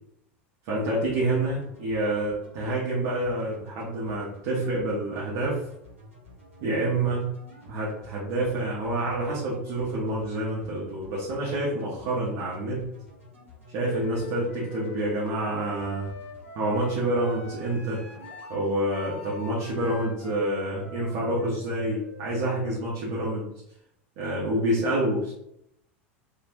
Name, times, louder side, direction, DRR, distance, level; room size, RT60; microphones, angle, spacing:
voice 1, 0.7-5.7 6.6-7.2 7.7-12.8 13.7-16.1 16.5-18.1 18.5-23.5 24.2-25.3, right 1 dB, 60° right, -6 dB, 0.9 m, -28 dB
sound 1, 1.1-15.4 15.8-16.4 16.7-17.7 18.0-18.5, left 1 dB, 90° right, 1.1 m, -51 dB
Wind instrument woodwind instrument, 13.8-23.6, left 4 dB, 90° left, 0.8 m, -43 dB
3.1 x 2.3 x 2.5 m, 0.76 s
hypercardioid pair, 90°, 7 cm